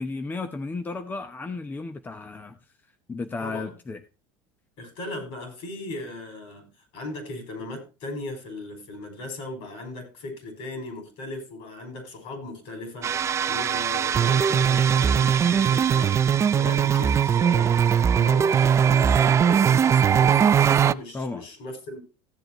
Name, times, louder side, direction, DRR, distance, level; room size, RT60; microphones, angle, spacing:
voice 1, 0.0-2.5 3.1-4.0 21.1-21.4, left 3 dB, 15° left, 0.8 m, -33 dB
voice 2, 3.4-3.7 4.8-6.7 6.9-13.1 13.5-16.2 16.5-17.8 18.1-22.0, left 2 dB, 60° left, 5.6 m, -37 dB
sound 1, 13.0-20.9, right 8 dB, 25° right, 0.4 m, -20 dB
15.5 x 7.7 x 3.0 m
supercardioid pair, 120°, 11 cm